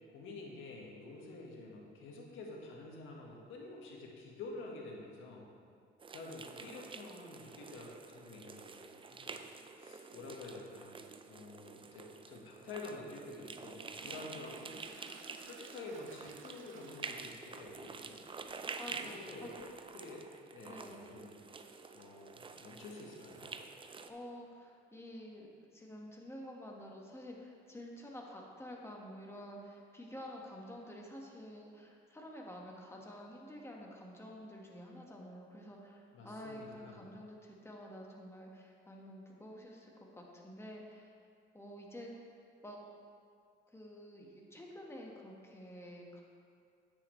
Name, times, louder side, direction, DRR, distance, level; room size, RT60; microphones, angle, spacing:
voice 1, 0.1-5.5 6.1-9.4 9.8-14.9 15.4-18.2 18.9-19.7 19.9-20.3 20.5-21.4 21.9-23.5 36.1-37.1, left 2 dB, 85° left, -1 dB, 1.6 m, -49 dB
sound 1, 6.0-24.1, right 4 dB, 25° right, 0.5 m, -48 dB
Toilet flush, 13.5-19.7, right 6 dB, 80° right, 0.7 m, -60 dB
voice 2, 18.8-19.5 20.7-21.1 24.1-25.5 25.7-41.1 41.5-42.3 42.6-42.8 43.7-46.2, equal, 15° left, -1 dB, 1.5 m, -49 dB
9.7 x 8.4 x 3.2 m, 2.3 s
cardioid pair, 90°, 20 cm